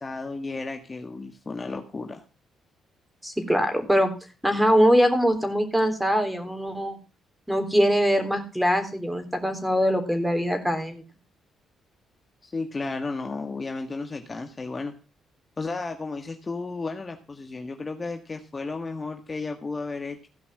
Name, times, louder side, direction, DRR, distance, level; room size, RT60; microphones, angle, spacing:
voice 1, 0.0-2.2 12.4-14.9 15.6-20.3, left 3 dB, 30° left, 5 dB, 1.5 m, -33 dB
voice 2, 3.2-4.1 4.4-7.0 7.5-11.0, equal, 5° right, 7 dB, 3.4 m, -22 dB
16.0 x 5.3 x 7.6 m, 0.35 s
cardioid pair, 90°, 0 cm